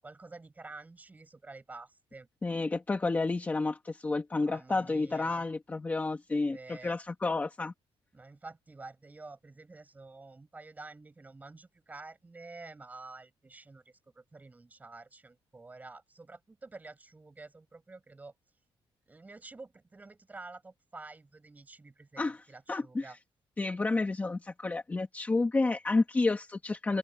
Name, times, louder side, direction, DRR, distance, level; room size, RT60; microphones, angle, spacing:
voice 1, 0.0-2.3 4.4-5.5 6.5-6.9 8.1-18.3 19.1-23.2, right 3 dB, 15° right, 7.5 m, -49 dB
voice 2, 2.4-7.7 22.2-22.4 22.7-23.2 23.6-27.0, left 3 dB, 15° left, 1.7 m, -30 dB
open air
cardioid pair, 170°, 10 cm